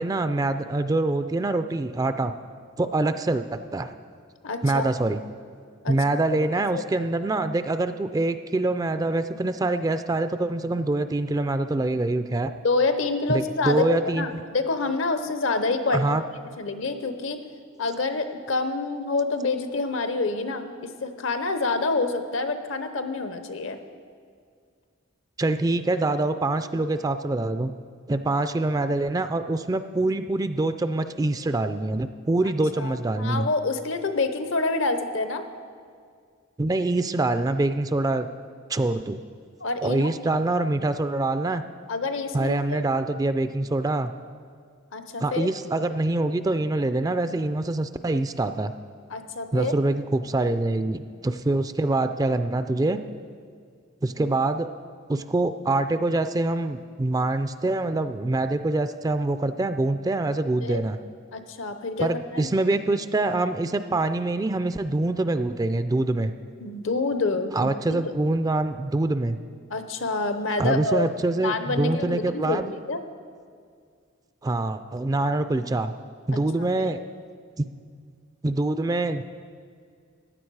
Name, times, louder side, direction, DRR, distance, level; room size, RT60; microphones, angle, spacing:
voice 1, 0.0-2.3 2.8-3.9 4.6-5.2 5.9-12.5 13.3-14.3 15.9-16.2 25.4-27.7 28.1-33.5 36.6-38.3 38.7-39.2 39.8-41.6 42.3-44.1 45.2-48.7 49.5-53.0 54.0-54.7 55.1-61.0 62.0-66.3 67.5-69.4 70.6-72.7 74.4-75.9 76.3-77.0 78.4-79.2, right 2 dB, 20° right, 10 dB, 0.3 m, -25 dB
voice 2, 4.4-4.8 5.8-5.9 6.4-7.0 12.6-16.1 16.6-17.4 17.8-23.8 32.7-35.4 39.6-40.1 41.9-42.9 44.9-45.5 49.1-49.7 60.6-60.8 61.3-62.5 66.6-68.1 69.7-71.1 71.4-73.0 75.2-75.3 76.6-76.9, left 3 dB, 70° left, 9 dB, 0.9 m, -27 dB
15.0 x 9.6 x 4.7 m, 2.1 s
head